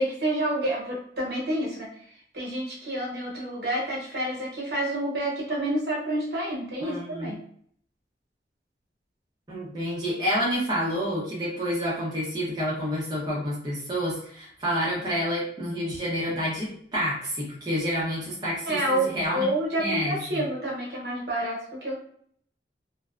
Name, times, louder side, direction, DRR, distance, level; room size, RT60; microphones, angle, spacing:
voice 1, 0.0-1.9 2.3-7.4 18.6-22.0, right 1 dB, 65° right, -3 dB, 0.9 m, -28 dB
voice 2, 6.8-7.3 9.5-19.5 19.8-20.4, equal, 25° right, -6 dB, 0.6 m, -29 dB
2.6 x 2.2 x 2.3 m, 0.62 s
head